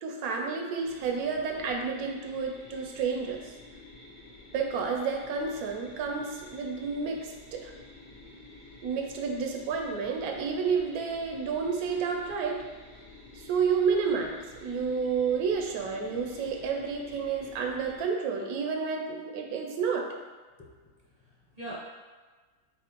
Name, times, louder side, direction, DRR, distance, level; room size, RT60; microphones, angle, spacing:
voice 1, 0.0-3.5 4.5-7.7 8.8-12.6 13.4-20.1, right 5 dB, 90° right, 2 dB, 1.1 m, -30 dB
sound 1, 0.8-18.1, left 2 dB, 70° left, 1.4 m, -50 dB
voice 2, 20.6-21.7, right 1 dB, 40° left, -7 dB, 0.6 m, -45 dB
5.8 x 2.1 x 3.0 m, 1.4 s
omnidirectional pair, 1.5 m